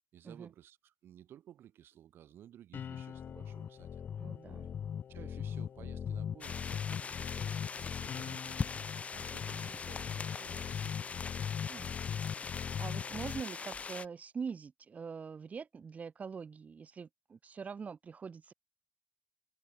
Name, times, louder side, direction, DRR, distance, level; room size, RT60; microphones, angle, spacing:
voice 1, 0.1-4.0 5.1-7.7 8.0-11.1, right 11 dB, 80° right, 7.7 m, -56 dB
sound 1, 2.7-13.4, left 8 dB, 55° left, 1.1 m, -40 dB
voice 2, 4.2-4.7 9.5-9.8 11.7-11.9 12.8-18.5, right 5 dB, 40° right, 8.0 m, -44 dB
sound 2, 6.4-14.1, left 5 dB, 35° left, 3.9 m, -41 dB
cardioid pair, 115°, 4 cm